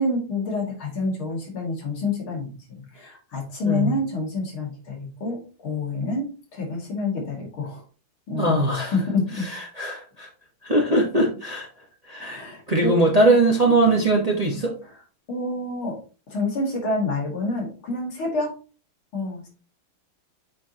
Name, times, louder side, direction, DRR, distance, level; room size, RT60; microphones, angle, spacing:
voice 1, 0.0-7.8 8.3-8.6 8.9-9.5 12.2-13.0 15.3-16.0 16.3-18.5 19.1-19.5, left 3 dB, 75° left, -2 dB, 3.2 m, -28 dB
voice 2, 8.4-8.9 9.5-10.3 10.6-11.7 12.1-14.7, right 2 dB, 20° right, 0 dB, 1.1 m, -21 dB
8.6 x 4.7 x 2.9 m, 0.35 s
omnidirectional pair, 2.3 m